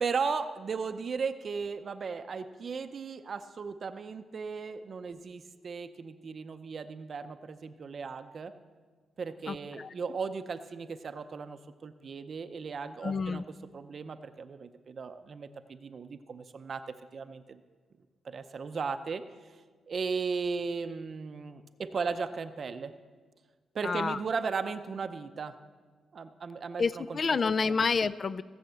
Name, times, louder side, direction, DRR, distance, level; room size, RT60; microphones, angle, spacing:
voice 1, 0.0-8.5 9.2-16.8 17.1-17.6 18.2-19.2 19.9-22.9 23.7-25.5 26.1-27.4 27.7-27.8, right 5 dB, 40° right, 9 dB, 0.6 m, -36 dB
voice 2, 9.5-9.9 13.0-13.4 23.8-24.2 26.8-28.4, left 5 dB, 35° left, 16 dB, 0.3 m, -29 dB
16.0 x 7.2 x 7.8 m, 1.5 s
wide cardioid pair, 150°, 0 cm